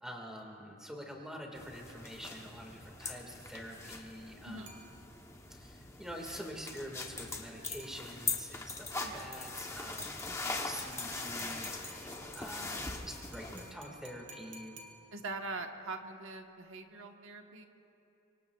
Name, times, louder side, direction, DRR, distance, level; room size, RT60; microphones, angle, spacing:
voice 1, 0.0-4.7 5.5-14.8, equal, 5° right, 0 dB, 1.8 m, -46 dB
sound 1, 1.5-13.7, left 3 dB, 15° left, 0.8 m, -41 dB
voice 2, 4.4-4.8 9.0-9.3 12.6-12.9 15.1-17.7, right 3 dB, 60° right, 4 dB, 1.2 m, -43 dB
sound 2, 4.7-5.5 7.8-8.5 10.9-15.5, right 2 dB, 35° right, 1.4 m, -56 dB
25.0 x 24.0 x 2.4 m, 2.8 s
head